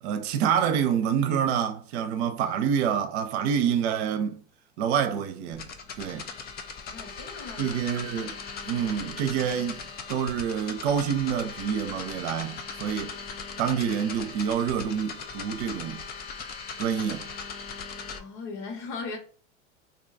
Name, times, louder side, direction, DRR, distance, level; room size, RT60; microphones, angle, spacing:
voice 1, 0.0-4.4 4.8-5.7 6.0-6.3 7.6-8.3 8.6-9.8 10.1-13.1 13.6-16.0 16.8-17.2, right 8 dB, 60° right, 0.7 m, -27 dB
sound 1, 5.5-18.2, left 5 dB, 25° left, 0.5 m, -39 dB
voice 2, 6.7-7.8 18.2-19.2, left 4 dB, 55° left, 1.4 m, -38 dB
2.8 x 2.3 x 4.0 m
hypercardioid pair, 100°, 37 cm